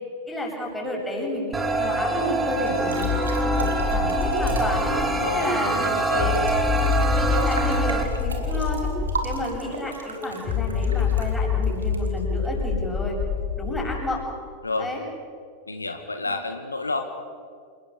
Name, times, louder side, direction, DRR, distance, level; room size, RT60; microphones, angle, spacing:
voice 1, 0.3-4.9 5.3-6.4 6.7-8.9 9.2-13.2 13.6-14.2 14.8-15.0 16.3-16.4, left 1 dB, 5° left, -1 dB, 7.6 m, -31 dB
sound 1, 1.5-8.0, right 2 dB, 15° right, 2.9 m, -25 dB
sound 2, 2.7-4.9 6.3-12.5, right 4 dB, 75° right, 3.5 m, -35 dB
sound 3, 3.0-5.3 6.2-9.4 10.5-14.0, left 6 dB, 30° left, 4.8 m, -26 dB
voice 2, 5.0-6.3 14.6-14.9 15.7-17.0, left 3 dB, 80° left, 6 dB, 1.8 m, -30 dB
28.5 x 19.0 x 7.1 m, 2.1 s
figure-of-eight pair, 90°, 0 cm